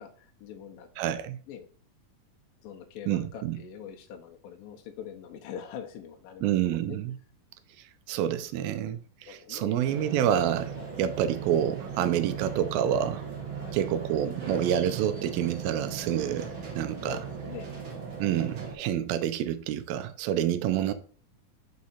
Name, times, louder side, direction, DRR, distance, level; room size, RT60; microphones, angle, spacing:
voice 1, 0.0-0.9 1.5-1.7 2.6-7.0 9.3-10.0 10.7-10.9 13.6-13.8 17.1-17.8, left 8 dB, 80° left, 2.2 m, -44 dB
voice 2, 1.0-1.4 3.1-3.6 6.4-7.1 8.1-13.3 13.7-17.2 18.2-20.9, right 10 dB, 85° right, 2.3 m, -28 dB
sound 1, 9.8-18.7, right 6 dB, 65° right, 1.2 m, -38 dB
5.3 x 4.8 x 4.1 m
omnidirectional pair, 4.2 m